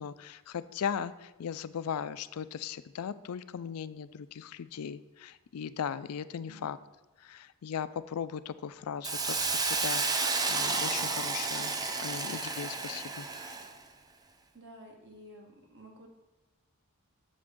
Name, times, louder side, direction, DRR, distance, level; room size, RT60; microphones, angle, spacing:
voice 1, 0.0-6.8 7.2-11.7 12.0-13.3, left 7 dB, 75° left, 14 dB, 0.4 m, -38 dB
voice 2, 6.5-6.8 14.5-16.1, equal, 55° right, 1 dB, 1.4 m, -52 dB
Hiss, 9.0-13.8, right 4 dB, 15° right, 0.4 m, -31 dB
7.5 x 6.9 x 3.7 m, 1.1 s
head